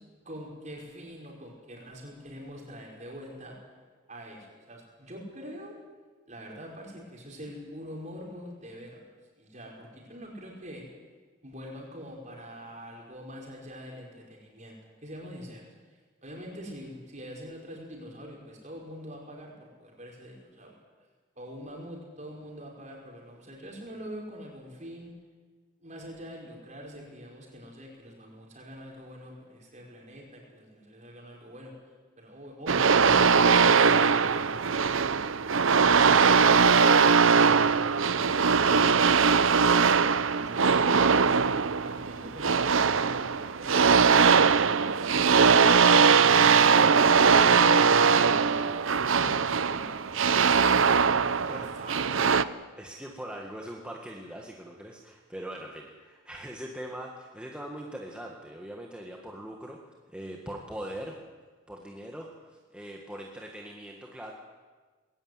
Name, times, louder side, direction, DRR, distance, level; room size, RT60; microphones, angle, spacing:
voice 1, 0.2-3.6 4.1-5.7 6.3-9.1 9.4-10.8 11.4-15.7 16.2-20.7 21.4-25.1 25.8-31.7 32.2-34.0 40.3-41.2 41.8-44.1 44.5-45.5 47.3-50.8 51.5-52.5, equal, 35° right, -1 dB, 5.7 m, -44 dB
sound 1, 32.7-52.4, right 5 dB, 80° right, 0.7 m, -21 dB
voice 2, 51.2-52.2 52.8-61.2 61.7-64.3, right 1 dB, 5° right, 0 dB, 1.7 m, -41 dB
21.0 x 16.5 x 9.7 m, 1.4 s
head